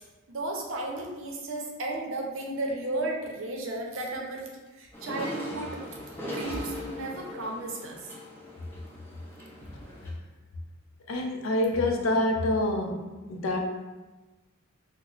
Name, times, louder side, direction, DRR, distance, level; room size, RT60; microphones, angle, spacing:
voice 1, 0.3-4.5 4.7-5.8 6.1-8.0 9.6-9.7, right 2 dB, 70° right, 0 dB, 0.6 m, -34 dB
sound 1, 4.9-10.1, left 1 dB, 10° left, 0.6 m, -40 dB
voice 2, 11.1-13.0 13.3-13.6, left 1 dB, 80° left, 2 dB, 0.5 m, -26 dB
2.9 x 2.0 x 3.9 m, 1.2 s
head